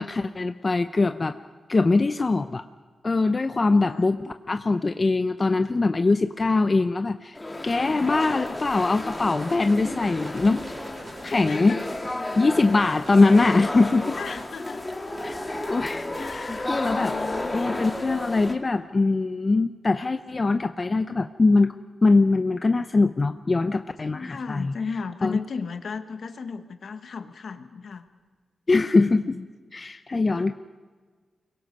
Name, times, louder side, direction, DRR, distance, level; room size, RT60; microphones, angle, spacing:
voice 1, 0.0-1.4 1.7-2.6 3.0-7.4 7.6-10.6 11.2-11.7 12.4-14.1 15.2-15.4 15.7-17.1 17.5-21.7 22.0-24.7 25.2-25.4 28.7-29.4 29.7-30.5, left 3 dB, 35° left, 9 dB, 0.6 m, -22 dB
voice 2, 3.3-4.1 7.7-8.1 11.4-11.8 14.1-14.8 16.1-18.1 24.0-28.0 29.1-29.5 30.4-30.5, left 5 dB, 70° left, 8 dB, 1.3 m, -36 dB
sound 1, 7.3-18.5, left 1 dB, 20° left, 2.5 m, -32 dB
sound 2, 8.8-14.6, right 1 dB, 45° right, 5.1 m, -45 dB
24.0 x 22.0 x 5.3 m, 1.5 s
cardioid pair, 70°, 0 cm